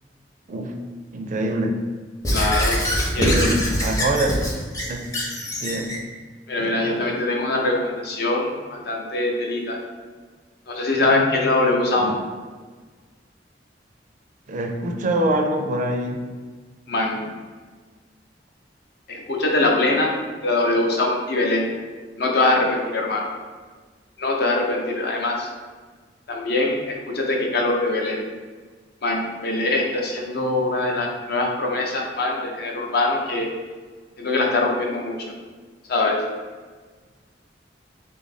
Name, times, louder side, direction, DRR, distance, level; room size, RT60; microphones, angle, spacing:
voice 1, 1.1-1.8 3.1-4.3 4.9-5.1 5.6-6.0 6.6-7.0 12.0-12.2 14.5-16.2, right 1 dB, 45° right, 3 dB, 0.4 m, -24 dB
Squeak / Writing, 2.2-6.0, equal, 20° left, 0.6 m, -23 dB
voice 2, 2.3-3.5 6.5-9.8 10.7-12.2 16.9-17.2 19.1-20.1 20.4-21.7 22.2-23.3 24.2-25.5 26.3-28.2 29.0-33.5 34.2-35.2 35.9-36.2, left 2 dB, 65° left, 0 dB, 0.6 m, -23 dB
3.3 x 2.4 x 4.1 m, 1.4 s
head